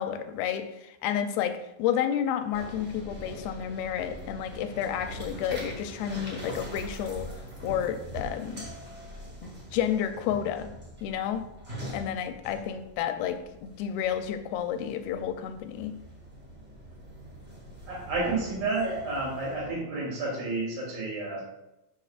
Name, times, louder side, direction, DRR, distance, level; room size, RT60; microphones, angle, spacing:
voice 1, 0.0-7.3 7.6-8.6 9.4-10.7 11.0-11.5 11.9-15.9, left 9 dB, 85° left, 8 dB, 2.6 m, -31 dB
sound 1, 2.5-19.7, right 1 dB, 40° right, 0.5 m, -42 dB
voice 2, 17.9-21.4, right 3 dB, 80° right, -3 dB, 4.8 m, -31 dB
12.5 x 6.0 x 2.5 m, 0.90 s
omnidirectional pair, 4.4 m